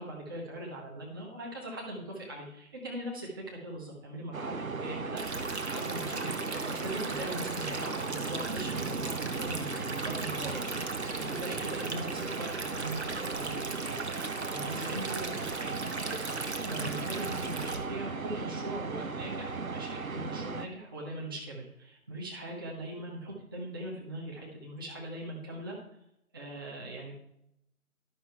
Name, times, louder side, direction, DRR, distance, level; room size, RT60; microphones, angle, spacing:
voice 1, 0.0-10.7 10.9-15.8 16.6-25.8 26.3-27.2, right 1 dB, 15° right, -4 dB, 1.2 m, -41 dB
sound 1, 4.3-20.7, right 4 dB, 70° right, 0.9 m, -37 dB
Stream, 5.2-17.8, right 3 dB, 50° right, 1.2 m, -39 dB
11.5 x 6.2 x 4.5 m, 0.77 s
figure-of-eight pair, 155°, 43 cm